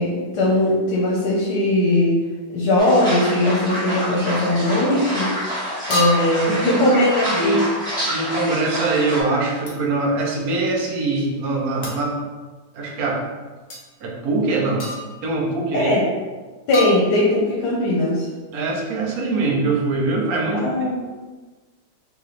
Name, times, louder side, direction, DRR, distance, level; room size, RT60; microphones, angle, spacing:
voice 1, 0.0-2.2 2.5-5.5 5.9-7.6 15.7-16.0 16.7-18.3 20.5-21.0, left 1 dB, 80° left, -5 dB, 1.4 m, -19 dB
sound 1, 2.8-9.2, equal, 5° left, 1.2 m, -27 dB
sound 2, 4.6-4.8 5.9-6.5 9.7-9.9 11.8-12.1 13.7-13.8 14.8-15.3 16.7-17.5, left 3 dB, 45° left, 0.9 m, -28 dB
voice 2, 6.5-6.8 7.4-7.6 8.1-12.1 12.7-13.2 14.0-14.9 15.2-15.9 18.5-20.7, right 3 dB, 65° right, -2 dB, 1.2 m, -22 dB
3.1 x 3.0 x 4.0 m, 1.3 s
omnidirectional pair, 1.8 m